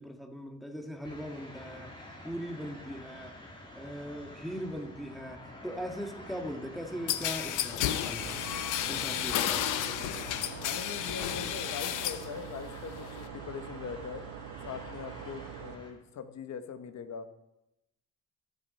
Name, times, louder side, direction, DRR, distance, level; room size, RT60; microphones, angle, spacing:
voice 1, 0.0-3.4 3.7-8.4 8.9-9.6, equal, ahead, 3 dB, 1.7 m, -40 dB
sound 1, 1.0-15.9, left 1 dB, 15° left, 2.8 m, -49 dB
sound 2, 7.1-12.3 12.6-13.3, left 11 dB, 90° left, 0.8 m, -32 dB
sound 3, 8.2-15.8, right 11 dB, 90° right, 0.8 m, -44 dB
voice 2, 10.6-14.3 14.6-17.3, left 7 dB, 65° left, 9 dB, 1.2 m, -42 dB
20.0 x 6.8 x 4.3 m, 0.90 s
cardioid pair, 90°, 30 cm